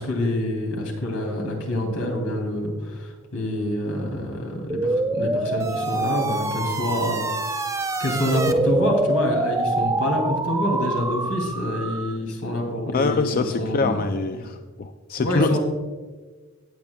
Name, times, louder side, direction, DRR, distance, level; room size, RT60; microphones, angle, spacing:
voice 1, 0.0-7.2 8.0-14.1 15.2-15.6, left 1 dB, 80° left, 1 dB, 2.8 m, -26 dB
sound 1, 4.7-12.2, right 2 dB, 15° right, 0.5 m, -25 dB
voice 2, 12.9-15.6, left 3 dB, 45° left, 7 dB, 0.4 m, -24 dB
17.0 x 8.6 x 2.3 m, 1.4 s
head